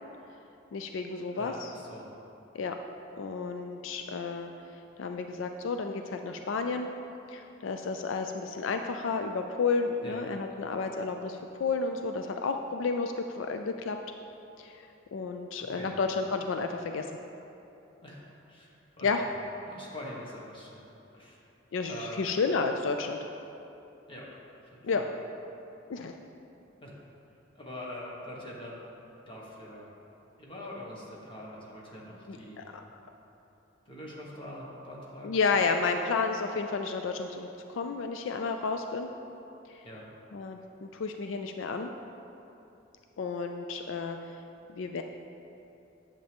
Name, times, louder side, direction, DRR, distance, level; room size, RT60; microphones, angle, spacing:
voice 1, 0.7-1.7 2.5-2.8 3.2-4.5 5.0-6.9 7.3-14.0 14.6-17.1 19.0-19.2 21.7-23.2 24.8-25.0 25.9-26.1 32.3-32.8 35.2-39.1 39.7-39.8 40.3-41.9 43.2-44.4 44.8-45.0, left 4 dB, 75° left, 6 dB, 0.4 m, -31 dB
voice 2, 1.3-2.1 10.0-10.3 15.7-16.0 18.0-18.2 18.5-19.1 19.7-20.8 21.1-21.4 21.9-22.2 24.1-24.3 24.7-25.1 26.8-26.9 27.5-28.9 29.3-29.9 30.4-32.7 33.8-35.4 39.8-40.0, left 1 dB, 25° left, -4 dB, 1.5 m, -44 dB
10.0 x 7.4 x 3.6 m, 2.9 s
head